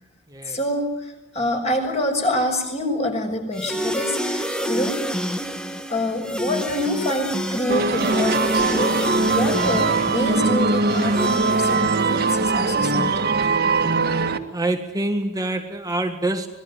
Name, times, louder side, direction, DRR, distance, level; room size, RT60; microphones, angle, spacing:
voice 1, 0.5-5.0 5.9-13.3, left 1 dB, 30° left, 3 dB, 6.5 m, -26 dB
sound 1, 3.5-12.7, equal, 5° left, 1.6 m, -28 dB
sound 2, 7.7-14.4, right 3 dB, 45° right, 1.8 m, -21 dB
voice 2, 14.5-16.5, right 2 dB, 15° right, 6 dB, 1.7 m, -25 dB
26.0 x 20.5 x 9.1 m, 0.88 s
head